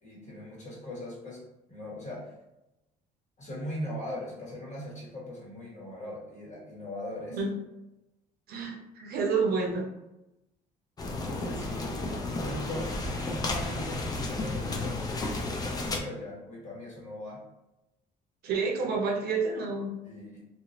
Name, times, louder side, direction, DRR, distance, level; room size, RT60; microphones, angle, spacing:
voice 1, 0.0-1.4 1.7-2.3 3.4-7.4 11.1-17.4 20.0-20.4, left 1 dB, 45° left, -4 dB, 1.2 m, -40 dB
voice 2, 8.5-9.9 18.4-20.0, right 4 dB, 65° right, 0 dB, 0.6 m, -29 dB
sound 1, 11.0-16.0, left 2 dB, 25° left, 0.4 m, -32 dB
2.4 x 2.0 x 2.9 m, 0.95 s
cardioid pair, 110°, 17 cm